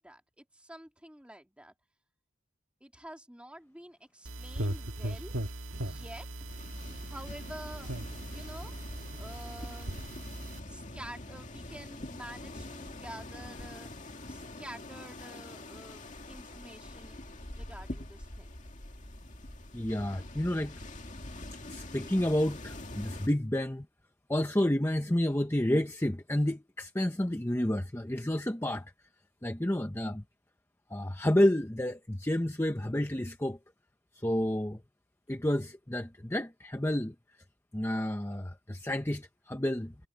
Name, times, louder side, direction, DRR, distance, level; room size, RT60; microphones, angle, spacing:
voice 1, 0.0-1.7 2.8-5.3 5.7-6.5 7.1-7.9 8.3-8.7 9.2-10.0 10.7-13.9 14.3-17.2 17.5-18.6, right 1 dB, 5° right, 2.8 m, -48 dB
sound 1, 4.2-10.6, right 1 dB, 90° right, 1.6 m, -38 dB
sound 2, 6.5-23.3, left 1 dB, 40° left, 2.3 m, -45 dB
voice 2, 19.7-20.7 21.5-23.9 24.3-28.9 29.4-30.2 30.9-33.6 34.1-34.8 35.3-37.1 37.7-39.9, left 1 dB, 10° left, 0.8 m, -30 dB
head